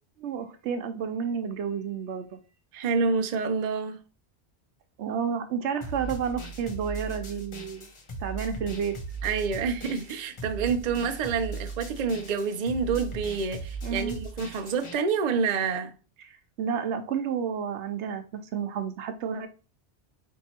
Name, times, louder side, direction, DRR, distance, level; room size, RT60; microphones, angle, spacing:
voice 1, 0.2-2.4 5.0-7.9 8.2-8.9 13.8-14.2 16.6-19.5, right 7 dB, 85° right, 1.0 m, -31 dB
voice 2, 2.7-4.0 9.2-15.9, right 5 dB, 50° right, 0.5 m, -28 dB
sound 1, 5.8-14.9, right 3 dB, 30° left, 0.7 m, -38 dB
4.5 x 2.7 x 4.3 m
omnidirectional pair, 1.2 m